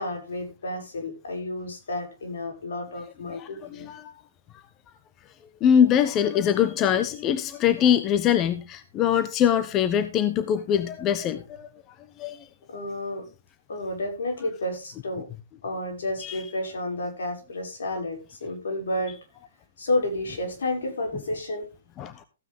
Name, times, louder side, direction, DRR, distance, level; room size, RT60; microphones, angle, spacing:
voice 1, 0.0-3.9 12.7-13.2 13.7-15.3 15.6-19.2 19.8-21.7, left 1 dB, 80° left, 2 dB, 6.3 m, -31 dB
voice 2, 3.3-4.1 5.6-11.7 12.2-12.5 16.2-16.4 22.0-22.2, left 9 dB, 25° left, 12 dB, 1.0 m, -23 dB
15.5 x 9.2 x 3.7 m, 0.28 s
hypercardioid pair, 140°, 0 cm